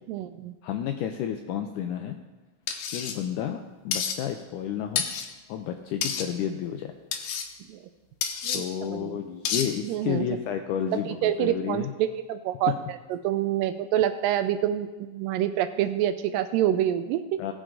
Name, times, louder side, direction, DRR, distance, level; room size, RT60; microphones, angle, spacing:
voice 1, 0.1-0.6 7.7-7.8 8.4-9.2 9.8-10.3 10.9-17.5, right 11 dB, 80° right, 11 dB, 2.1 m, -27 dB
voice 2, 0.6-2.2 2.9-5.0 5.5-6.9 8.5-11.9 17.4-17.5, left 9 dB, 90° left, 6 dB, 1.8 m, -31 dB
sound 1, 2.7-3.2 3.9-4.2 5.0-5.3 6.0-6.3 7.1-7.5 8.2-8.6 9.5-9.7, left 7 dB, 75° left, 2.4 m, -29 dB
18.5 x 6.2 x 3.8 m, 1.2 s
omnidirectional pair, 4.1 m